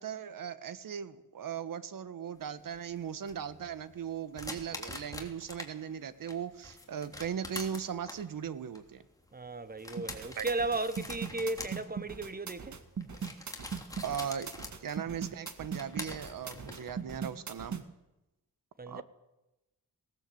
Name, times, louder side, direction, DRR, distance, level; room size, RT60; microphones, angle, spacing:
voice 1, 0.0-9.0 10.4-10.5 14.0-17.8 18.9-19.0, right 8 dB, 70° right, 1.3 m, -38 dB
sound 1, 2.4-5.7 6.1-17.0, left 2 dB, 10° left, 3.3 m, -46 dB
voice 2, 9.3-12.8 18.8-19.0, right 2 dB, 25° right, 1.3 m, -35 dB
sound 2, 10.0-17.8, right 6 dB, 55° right, 2.1 m, -39 dB
19.0 x 18.5 x 7.9 m
cardioid pair, 85°, 35 cm